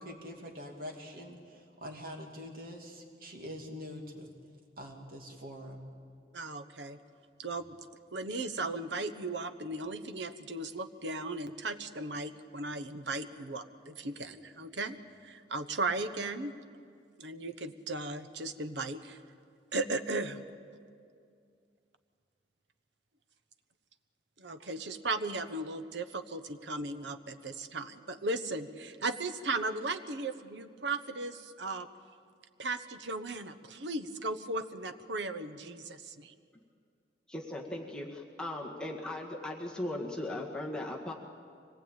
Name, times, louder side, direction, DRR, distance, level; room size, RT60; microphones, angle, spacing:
voice 1, 0.0-4.3 4.8-5.9, equal, 50° right, 2 dB, 2.7 m, -44 dB
voice 2, 6.3-7.0 7.4-7.8 8.1-15.0 15.2-16.5 17.2-19.2 19.7-20.4 24.4-31.9 32.6-36.3, right 2 dB, 80° right, 10 dB, 1.1 m, -36 dB
voice 3, 37.3-41.1, left 1 dB, 5° left, -2 dB, 1.9 m, -38 dB
24.5 x 18.5 x 9.0 m, 2.3 s
head